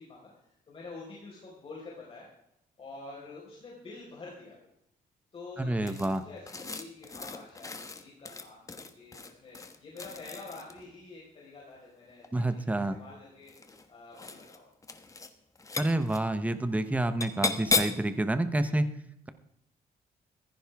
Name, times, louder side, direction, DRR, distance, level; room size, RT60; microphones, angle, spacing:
voice 1, 0.7-2.3 2.8-4.7 5.3-12.2 12.5-14.7 18.6-18.8, left 3 dB, 35° left, -4 dB, 4.7 m, -47 dB
voice 2, 5.6-6.2 12.3-13.0 15.8-18.9, right 1 dB, 10° right, 10 dB, 1.0 m, -28 dB
sound 1, 5.9-10.9 12.1-12.7 13.4-13.9 14.1-14.6 14.8-15.3 15.6-16.2 17.2-18.1, left 3 dB, 20° left, 1.3 m, -35 dB
15.5 x 15.0 x 3.6 m, 0.79 s
cardioid pair, 125°, 16 cm